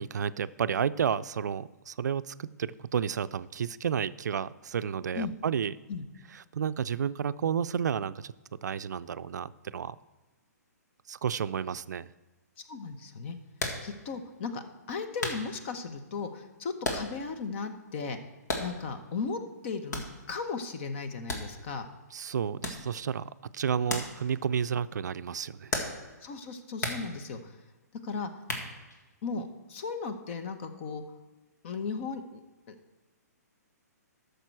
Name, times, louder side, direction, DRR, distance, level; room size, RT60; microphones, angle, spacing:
voice 1, 0.0-5.7 6.5-10.0 11.1-12.1 22.1-25.7, right 7 dB, 80° right, 15 dB, 0.4 m, -31 dB
voice 2, 12.7-13.4 13.8-18.2 18.6-21.9 26.2-27.6 28.0-28.3 29.2-31.0 31.6-32.4 32.7-32.8, left 4 dB, 45° left, 8 dB, 1.0 m, -36 dB
sound 1, 13.6-13.9 14.5-14.6 15.2-15.5 16.8-17.3 17.6-17.7 18.4-18.9 19.9-20.2 21.3-21.8 22.6-22.9 23.9-24.2 24.4-24.5 25.7-26.1 26.8-27.1 28.4-29.0, left 2 dB, 75° left, 2.0 m, -34 dB
12.0 x 6.7 x 4.7 m, 1.2 s
hypercardioid pair, 150°, 9 cm